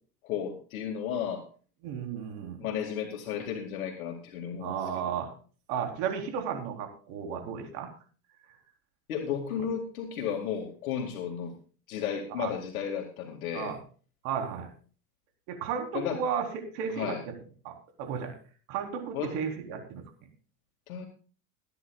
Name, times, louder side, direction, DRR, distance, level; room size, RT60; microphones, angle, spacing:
voice 1, 0.2-1.4 2.6-5.1 9.1-11.5 11.9-13.7 15.9-16.2 17.0-17.2 19.1-19.4 20.9-21.1, left 8 dB, 90° left, 1 dB, 2.2 m, -33 dB
voice 2, 1.8-2.6 4.6-5.3 5.7-7.9 12.4-12.5 13.5-13.8 14.2-14.7 15.5-16.5 16.7-17.3 17.6-17.7 18.0-18.4 18.7-20.0, right 7 dB, 65° right, 3 dB, 3.9 m, -33 dB
23.0 x 9.9 x 2.4 m, 0.39 s
supercardioid pair, 120°, 41 cm